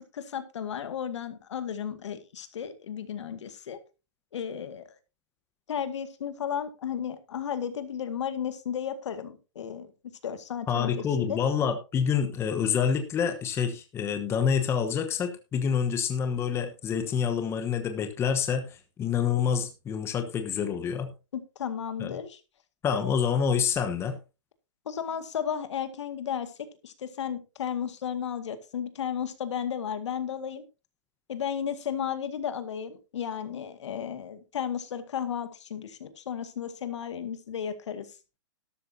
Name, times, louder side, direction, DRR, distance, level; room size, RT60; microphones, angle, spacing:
voice 1, 0.0-3.8 4.3-4.8 5.7-9.9 10.2-11.4 21.3-22.4 24.9-26.5 26.8-30.6 31.3-38.1, left 8 dB, 70° left, 10 dB, 2.1 m, -34 dB
voice 2, 10.7-21.1 22.0-22.1 22.8-24.2, left 7 dB, 15° left, 7 dB, 1.2 m, -27 dB
12.5 x 12.5 x 2.8 m, 0.28 s
hypercardioid pair, 145°, 16 cm